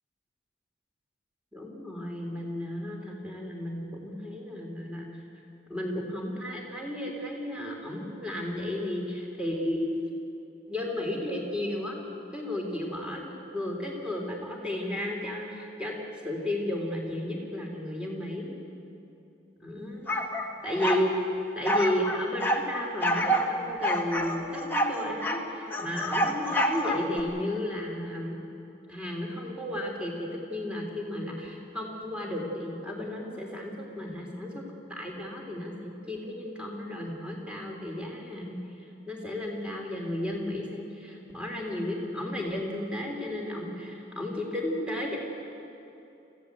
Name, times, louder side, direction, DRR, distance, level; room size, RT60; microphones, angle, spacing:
voice 1, 1.5-5.1 5.7-9.8 10.7-12.0 12.3-16.0 16.2-18.6 19.6-20.3 20.6-21.1 21.5-28.4 28.9-34.6 34.9-38.6 39.1-45.2, left 1 dB, 5° right, -1 dB, 3.4 m, -33 dB
sound 1, 20.1-21.1 21.6-22.6 23.0-23.5 23.8-25.4 25.7-27.2, equal, 10° left, 1.4 m, -27 dB
25.0 x 15.5 x 8.2 m, 2.8 s
head